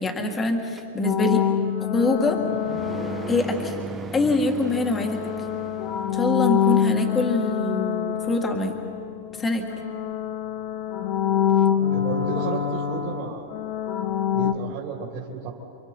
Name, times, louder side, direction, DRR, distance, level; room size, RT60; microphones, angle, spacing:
voice 1, 0.0-1.4 1.9-2.4 3.3-3.8 4.1-5.2 6.1-8.8 9.4-9.6, left 2 dB, 15° left, 3 dB, 1.9 m, -24 dB
sound 1, 0.8-6.4, right 5 dB, 15° right, 1.0 m, -37 dB
sound 2, 1.0-3.9 4.6-9.4 9.7-14.5, left 9 dB, 40° left, 1.0 m, -25 dB
voice 2, 11.9-13.5 14.3-15.5, right 6 dB, 45° right, -3 dB, 3.0 m, -33 dB
29.0 x 25.0 x 4.5 m, 2.5 s
supercardioid pair, 155°, 0 cm